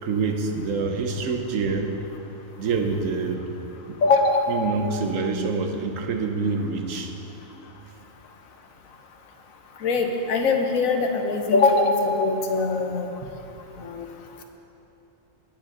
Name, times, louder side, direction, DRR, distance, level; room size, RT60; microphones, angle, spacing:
voice 1, 0.0-1.9 2.6-3.5 3.9-4.0 4.5-7.1 13.2-13.3, right 4 dB, 75° right, 5 dB, 1.2 m, -26 dB
voice 2, 4.0-4.6 9.8-13.1 13.8-14.1, left 3 dB, 90° left, 4 dB, 1.3 m, -22 dB
19.0 x 7.4 x 3.9 m, 3.0 s
omnidirectional pair, 1.4 m